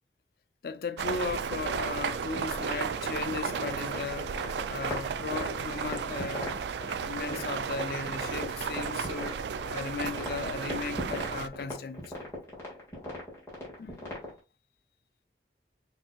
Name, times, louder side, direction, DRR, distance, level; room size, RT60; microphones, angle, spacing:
voice 1, 0.6-4.4 4.7-6.6 7.0-9.4 9.7-12.1 13.8-14.1, left 5 dB, 55° left, 0.4 m, -36 dB
sound 1, 1.0-11.5, right 6 dB, 80° right, 0.3 m, -34 dB
sound 2, 1.6-14.4, left 1 dB, 15° left, 1.6 m, -40 dB
5.6 x 2.8 x 2.2 m
head